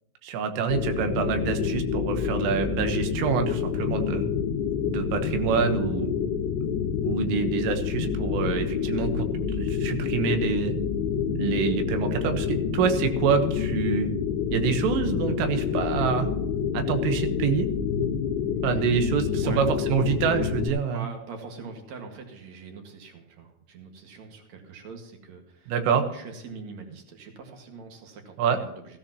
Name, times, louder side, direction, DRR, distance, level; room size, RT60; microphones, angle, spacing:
voice 1, 0.2-4.3 4.9-6.1 7.0-9.3 9.5-10.8 11.3-14.1 14.5-16.3 16.7-17.7 18.6-21.1 25.7-26.0 28.4-28.6, right 7 dB, 85° right, 6 dB, 3.8 m, -26 dB
sound 1, 0.7-20.7, left 7 dB, 75° left, 3.0 m, -28 dB
voice 2, 20.9-25.7 26.1-29.0, right 4 dB, 55° right, 3 dB, 2.1 m, -43 dB
16.0 x 14.0 x 3.0 m, 0.78 s
omnidirectional pair, 5.7 m